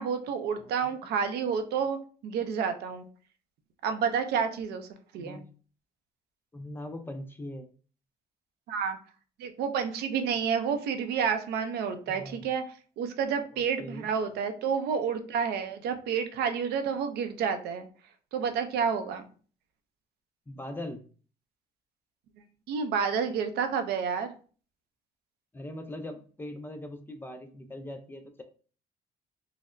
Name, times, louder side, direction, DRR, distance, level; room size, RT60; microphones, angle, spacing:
voice 1, 0.0-2.0 2.2-3.1 3.8-4.9 5.1-5.4 8.7-9.0 9.4-12.6 13.0-17.9 18.3-19.2 22.7-24.3, right 6 dB, 75° right, 8 dB, 0.5 m, -29 dB
voice 2, 5.2-5.5 6.5-7.7 12.1-12.5 13.5-14.1 20.5-21.0 25.5-28.4, left 1 dB, 10° left, 6 dB, 0.4 m, -41 dB
3.9 x 2.0 x 2.5 m, 0.40 s
cardioid pair, 110°, 17 cm